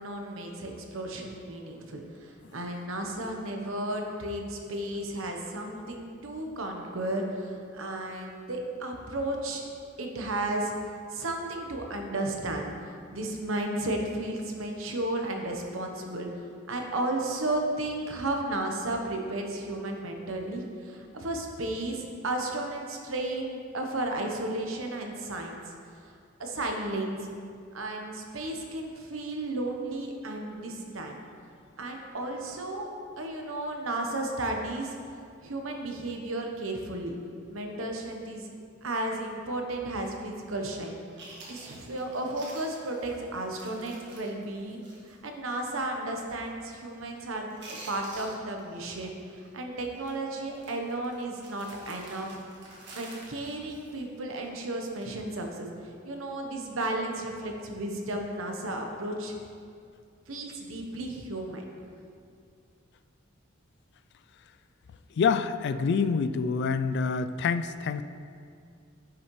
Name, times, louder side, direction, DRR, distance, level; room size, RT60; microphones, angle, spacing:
voice 1, 0.0-9.7 10.0-16.3 16.7-26.1 26.4-27.3 27.7-31.2 31.8-32.9 33.2-35.0 35.4-37.2 37.5-38.5 38.8-52.4 52.9-55.7 56.0-59.4 60.3-61.6, right 1 dB, 80° right, 2 dB, 1.0 m, -34 dB
Chewing mastication, 41.2-45.2 45.5-45.6 46.1-46.4 46.7-47.2 47.5-49.0 49.2-49.5 49.9-50.1 50.5-54.5 54.9-55.1, right 2 dB, 60° right, 1.6 m, -49 dB
voice 2, 65.1-68.0, left 5 dB, 55° left, 11 dB, 0.3 m, -26 dB
9.9 x 6.2 x 3.1 m, 2.3 s
head